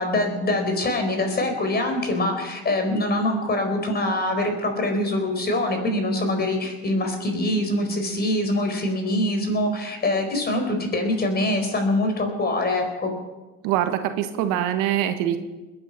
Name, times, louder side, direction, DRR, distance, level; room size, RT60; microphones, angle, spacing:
voice 1, 0.0-13.1, left 1 dB, 25° left, 5 dB, 4.5 m, -24 dB
voice 2, 13.6-15.4, right 11 dB, 70° right, 8 dB, 1.5 m, -23 dB
21.0 x 9.8 x 5.5 m, 1.1 s
supercardioid pair, 95°, 35 cm